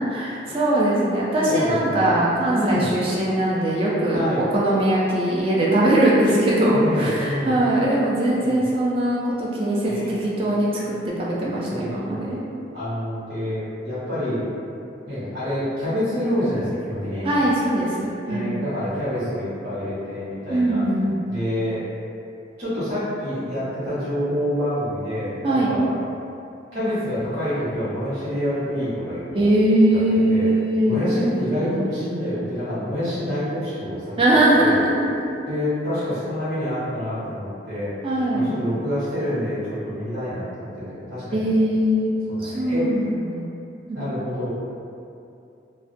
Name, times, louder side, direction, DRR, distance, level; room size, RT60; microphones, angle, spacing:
voice 1, 0.0-12.4 17.2-18.6 20.5-21.2 25.4-25.7 29.3-31.0 31.5-32.0 34.2-35.1 38.0-38.5 41.3-42.1 42.4-43.5 43.9-44.0, right 1 dB, 30° right, -5 dB, 0.4 m, -21 dB
voice 2, 1.4-2.1 2.5-2.9 4.1-4.4 6.7-7.6 8.4-8.6 9.9-10.2 11.7-12.4 12.7-14.4 15.1-17.3 18.3-20.8 21.3-21.8 22.6-25.9 26.7-29.5 29.9-30.0 30.3-30.5 30.8-34.8 35.5-37.9 38.3-41.5 42.3-42.8 43.9-44.5, equal, 70° right, -13 dB, 1.0 m, -27 dB
2.3 x 2.1 x 2.5 m, 2.6 s
head